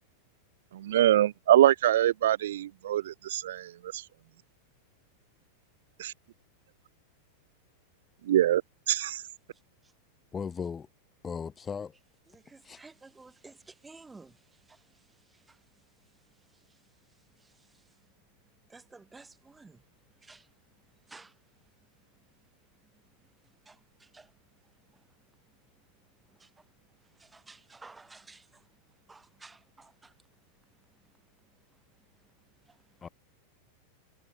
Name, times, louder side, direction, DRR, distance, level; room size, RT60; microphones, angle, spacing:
voice 1, 0.7-4.0 6.0-6.1 8.3-8.6 8.9-9.2, right 12 dB, 60° right, 0.5 m, -24 dB
voice 2, 10.3-10.9 11.2-12.0 12.6-12.8 33.0-33.1, left 6 dB, 20° left, 1.5 m, -36 dB
voice 3, 12.3-18.0 18.7-19.8 20.1-20.5 21.0-21.4 22.1-22.4 22.9-25.1 25.5-25.6 26.0-30.3 30.7-31.5 31.7-31.8 32.1-32.2 32.6-33.1, right 3 dB, 10° right, 2.9 m, -56 dB
figure-of-eight pair, 90°, 0 cm